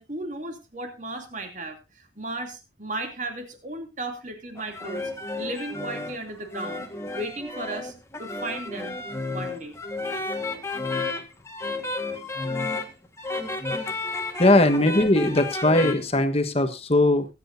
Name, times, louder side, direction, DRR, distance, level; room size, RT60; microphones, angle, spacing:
voice 1, 0.0-5.1 5.4-9.0 9.3-9.7 14.3-14.4, right 2 dB, 40° right, 5 dB, 2.7 m, -35 dB
sound 1, 4.6-15.9, left 3 dB, 15° left, 1.5 m, -32 dB
voice 2, 14.4-17.3, left 1 dB, 30° left, 9 dB, 1.3 m, -20 dB
22.0 x 8.7 x 2.6 m, 0.26 s
head